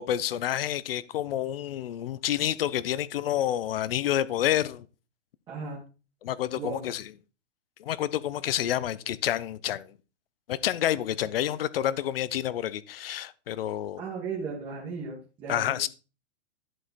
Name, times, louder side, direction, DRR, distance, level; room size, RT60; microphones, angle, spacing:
voice 1, 0.0-4.8 6.2-7.0 7.8-9.9 10.5-14.0 15.5-15.9, left 11 dB, 55° left, 0.7 m, -29 dB
voice 2, 5.5-5.8 6.6-7.0 14.0-15.9, right 5 dB, 15° right, 1.7 m, -36 dB
11.0 x 5.4 x 4.1 m
supercardioid pair, 180°, 36 cm